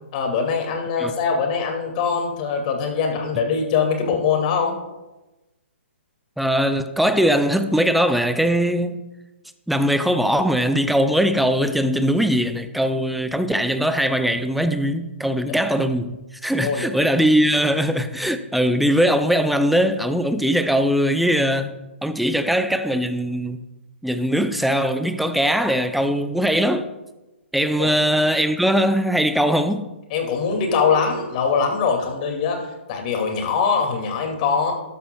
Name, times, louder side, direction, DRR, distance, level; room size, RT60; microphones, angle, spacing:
voice 1, 0.1-4.7 15.5-15.6 16.6-16.9 27.8-27.9 30.1-32.6 32.9-34.7, left 5 dB, 40° left, 2.3 m, -22 dB
voice 2, 6.4-9.0 9.7-16.1 16.4-23.6 24.0-26.9 27.5-29.9, equal, ahead, 0.5 m, -20 dB
13.0 x 12.5 x 2.3 m
hypercardioid pair, 135°, 7 cm